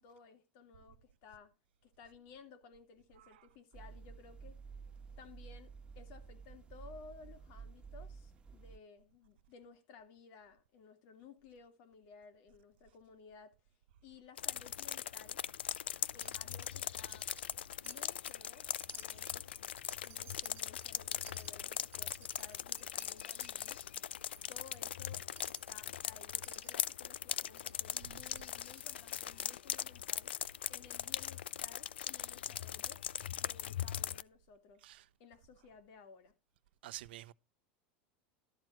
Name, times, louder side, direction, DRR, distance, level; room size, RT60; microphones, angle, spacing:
voice 1, 0.0-1.5 1.8-4.6 5.2-13.6 14.0-15.4 16.1-17.3 17.8-19.5 20.0-23.8 24.5-30.3 30.7-33.0 33.3-34.9 35.2-36.3, left 5 dB, 60° left, 2.5 m, -57 dB
sound 1, 3.7-8.8, right 5 dB, 20° right, 1.4 m, -51 dB
sound 2, 14.4-34.2, left 10 dB, 90° left, 0.4 m, -40 dB
Wind chime, 16.2-16.7 17.1-17.6 17.8-18.5 18.8-23.5 23.9-24.0 24.3-24.8 25.4-25.8 26.4-26.9 27.6-27.8 28.4-28.5 28.8-28.9, right 11 dB, 45° right, 1.4 m, -59 dB
voice 2, 36.8-37.3, right 15 dB, 75° right, 0.6 m, -47 dB
12.5 x 4.4 x 5.9 m
hypercardioid pair, 100°, 6 cm